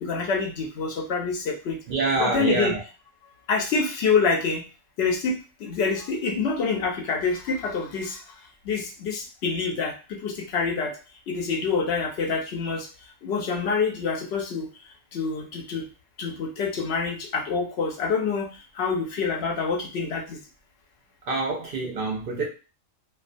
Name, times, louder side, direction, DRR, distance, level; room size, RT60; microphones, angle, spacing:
voice 1, 0.0-1.8 2.2-2.7 3.5-4.6 5.0-8.3 8.6-11.0 11.3-12.9 13.2-14.7 15.1-15.9 16.2-20.4, left 4 dB, 65° left, 1 dB, 0.8 m, -26 dB
voice 2, 1.9-2.8 21.3-22.5, right 3 dB, 60° right, 1 dB, 0.6 m, -26 dB
2.3 x 2.2 x 2.4 m, 0.33 s
omnidirectional pair, 1.3 m